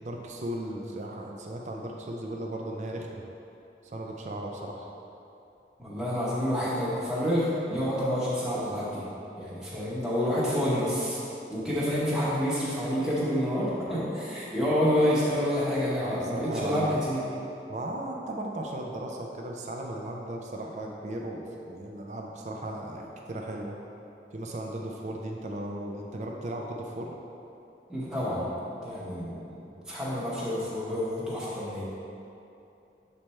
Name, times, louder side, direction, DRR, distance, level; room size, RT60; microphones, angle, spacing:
voice 1, 0.0-3.2 3.8-4.9 16.0-17.0 17.7-23.8 24.3-27.1, right 1 dB, 40° right, 0 dB, 0.4 m, -36 dB
voice 2, 5.8-9.0 9.4-11.2 11.5-17.2 27.9-28.5 28.8-29.6 29.9-31.8, equal, 5° right, -10 dB, 1.0 m, -28 dB
7.4 x 3.3 x 4.3 m, 2.8 s
head